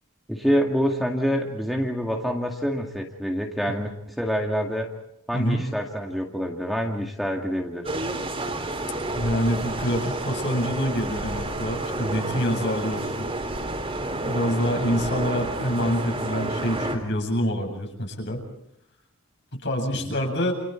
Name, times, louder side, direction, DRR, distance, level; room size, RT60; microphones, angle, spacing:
voice 1, 0.3-4.9 5.3-7.9 19.9-20.1, equal, ahead, 1 dB, 2.2 m, -26 dB
voice 2, 5.3-5.6 9.1-13.3 14.2-18.4 19.5-20.5, equal, 55° left, 2 dB, 8.0 m, -26 dB
sound 1, 7.8-17.0, right 2 dB, 25° right, 4.0 m, -30 dB
29.5 x 29.0 x 4.6 m, 0.75 s
head